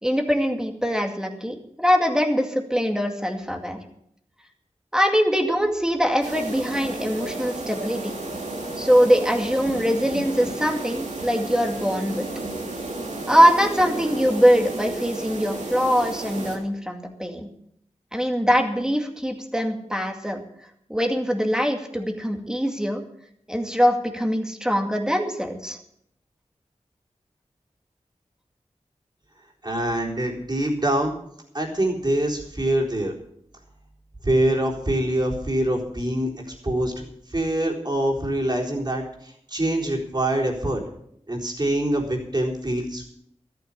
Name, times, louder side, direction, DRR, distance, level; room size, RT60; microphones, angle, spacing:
voice 1, 0.0-3.8 4.9-8.1 8.8-12.2 13.3-17.5 18.1-20.4 20.9-23.0 23.5-25.8, equal, 5° right, 4 dB, 2.2 m, -22 dB
sound 1, 6.2-16.6, right 2 dB, 85° right, 3.1 m, -32 dB
voice 2, 29.6-31.1 31.5-33.1 34.2-36.3 36.6-37.0 37.3-40.8 41.3-43.1, right 1 dB, 35° right, -1 dB, 3.9 m, -24 dB
13.5 x 9.4 x 7.2 m, 0.73 s
wide cardioid pair, 55°, 12 cm